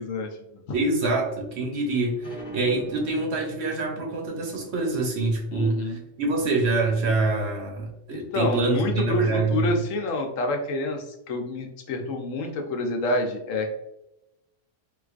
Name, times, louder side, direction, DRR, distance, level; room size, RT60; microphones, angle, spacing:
voice 1, 0.0-0.6 5.5-6.0 8.1-13.7, left 2 dB, 80° left, 3 dB, 1.0 m, -28 dB
voice 2, 0.7-9.8, right 3 dB, 65° right, 0 dB, 0.9 m, -25 dB
sound 1, 2.2-7.5, equal, 45° left, 0.8 m, -44 dB
3.8 x 2.4 x 2.4 m, 0.86 s
omnidirectional pair, 1.3 m